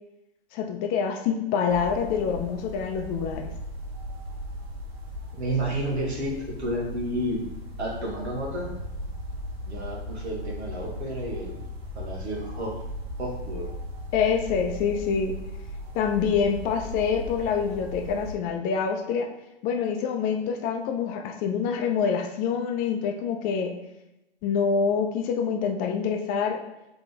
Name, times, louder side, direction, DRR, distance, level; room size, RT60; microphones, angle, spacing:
voice 1, 0.5-3.5 14.1-15.4 15.9-19.3 19.6-23.7 24.4-26.6, left 6 dB, 25° left, 4 dB, 0.5 m, -26 dB
sound 1, 1.7-18.3, left 1 dB, 65° right, 1.1 m, -37 dB
voice 2, 5.3-7.4 7.8-8.7 9.7-11.6 11.9-12.7 13.2-13.7, right 1 dB, 80° right, -3 dB, 1.4 m, -31 dB
3.9 x 3.8 x 3.4 m, 0.92 s
hypercardioid pair, 115°, 33 cm